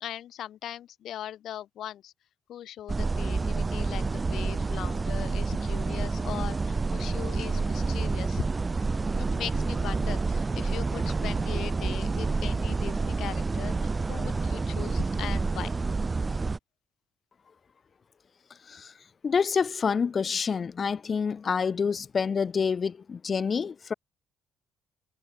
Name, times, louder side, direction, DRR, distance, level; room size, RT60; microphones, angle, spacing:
voice 1, 0.0-2.1 2.5-8.4 9.2-15.7, left 11 dB, 65° left, 1.4 m, -39 dB
sound 1, 2.9-16.6, right 3 dB, 30° right, 0.4 m, -28 dB
voice 2, 19.2-23.9, left 6 dB, 45° left, 0.3 m, -27 dB
hypercardioid pair, 45°, 0 cm